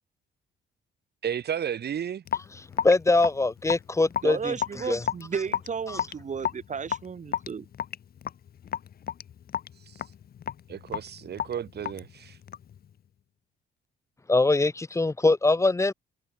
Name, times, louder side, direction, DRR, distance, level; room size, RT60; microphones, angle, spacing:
voice 1, 1.2-2.2 9.9-10.0 10.7-12.4, right 9 dB, 55° right, 2.1 m, -33 dB
Raindrop / Drip, 2.3-12.8, left 9 dB, 50° left, 0.9 m, -34 dB
voice 2, 2.8-4.5 4.9-5.0 14.3-15.9, left 2 dB, 15° left, 0.6 m, -22 dB
voice 3, 4.2-7.7, right 6 dB, 40° right, 1.3 m, -33 dB
cardioid pair, 90°, 20 cm